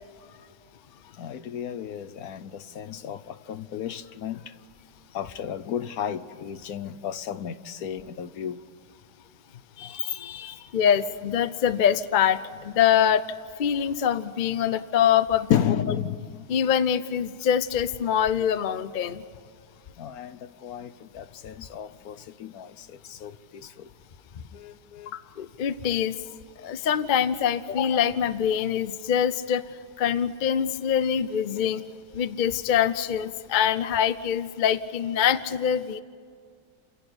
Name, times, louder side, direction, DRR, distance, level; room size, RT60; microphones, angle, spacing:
voice 1, 1.1-4.6 5.1-8.6 9.8-10.7 15.5-16.5 20.0-23.9 24.5-25.4, left 9 dB, 65° left, 1.2 m, -33 dB
voice 2, 10.7-13.2 13.6-15.6 16.5-19.2 25.4-26.2 26.6-29.7 30.0-31.8 32.1-36.0, left 9 dB, 50° left, 0.5 m, -24 dB
29.5 x 11.5 x 9.8 m
omnidirectional pair, 1.7 m